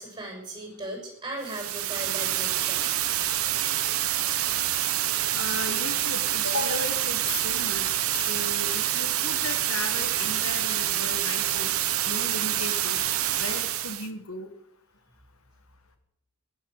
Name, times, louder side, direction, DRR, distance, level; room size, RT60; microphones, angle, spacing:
voice 1, 0.0-3.0 3.6-3.7, right 1 dB, 20° right, 1 dB, 6.7 m, -38 dB
sound 1, 1.4-14.1, right 12 dB, 85° right, 1.3 m, -27 dB
voice 2, 5.3-7.9 8.3-11.7 12.1-13.0 13.4-14.5, left 2 dB, 80° left, 9 dB, 1.8 m, -35 dB
15.0 x 11.5 x 8.3 m, 0.80 s
head